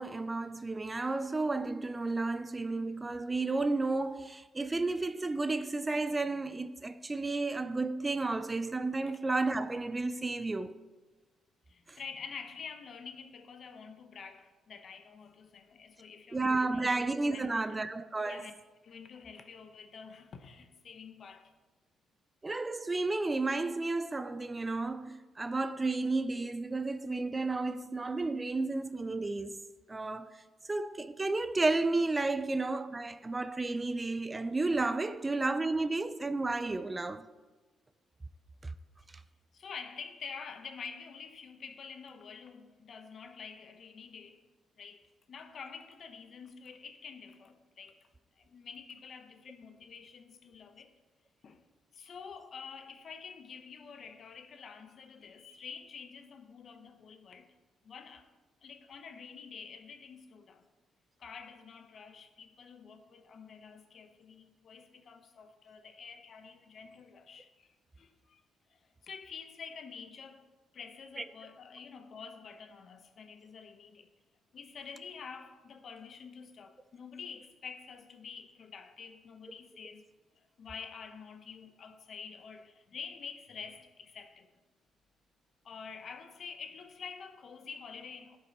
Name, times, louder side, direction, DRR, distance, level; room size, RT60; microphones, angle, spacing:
voice 1, 0.0-10.7 11.9-12.0 16.3-18.5 22.4-29.6 29.9-30.4 30.7-37.2 71.2-71.3, right 3 dB, 20° right, 0.4 m, -32 dB
voice 2, 11.7-17.0 17.3-17.9 18.2-18.5 18.8-21.5 39.5-44.5 44.8-48.0 48.4-50.9 51.4-51.6 51.9-57.5 57.8-58.3 58.6-60.7 61.2-68.4 68.7-70.5 70.7-74.1 74.5-80.1 80.4-84.5 85.6-88.4, left 6 dB, 55° left, 0.8 m, -48 dB
11.0 x 6.0 x 4.3 m
cardioid pair, 90°, 0 cm